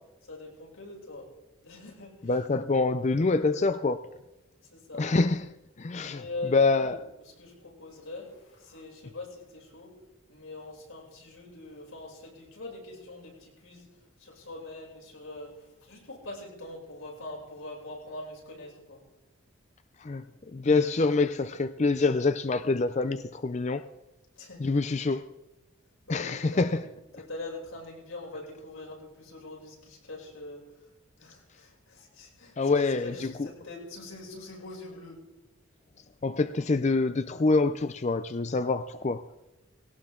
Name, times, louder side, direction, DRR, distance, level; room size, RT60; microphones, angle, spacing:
voice 1, 0.3-1.3 1.6-2.3 4.7-5.1 5.9-6.6 6.8-7.0 7.4-9.9 10.3-13.8 14.2-19.0 24.4-24.7 26.1-26.8 27.1-30.7 31.2-32.6 33.0-35.2, left 2 dB, 85° left, 6.9 m, -43 dB
voice 2, 2.2-4.1 5.0-7.1 20.0-23.9 24.6-25.2 26.1-26.8 32.6-33.5 36.2-39.2, left 3 dB, 35° left, 0.5 m, -26 dB
20.0 x 17.5 x 3.8 m
head